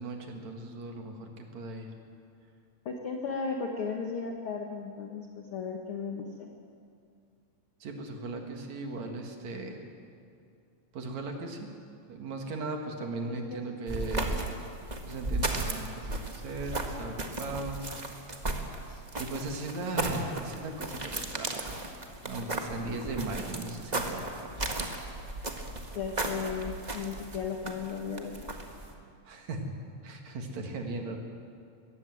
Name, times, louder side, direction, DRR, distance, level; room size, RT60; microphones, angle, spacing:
voice 1, 0.0-1.9 7.8-9.9 10.9-11.7 12.1-14.4 15.1-17.8 19.2-21.8 22.2-24.6 25.0-25.2 29.2-29.7 30.0-31.2, right 2 dB, 65° right, 3 dB, 3.2 m, -37 dB
voice 2, 2.9-6.5 13.3-13.6 18.8-19.0 25.9-28.5, left 5 dB, 55° left, 2 dB, 1.9 m, -36 dB
sound 1, 13.9-28.9, right 2 dB, 25° right, 0.9 m, -35 dB
21.5 x 17.0 x 7.8 m, 2.4 s
omnidirectional pair, 3.4 m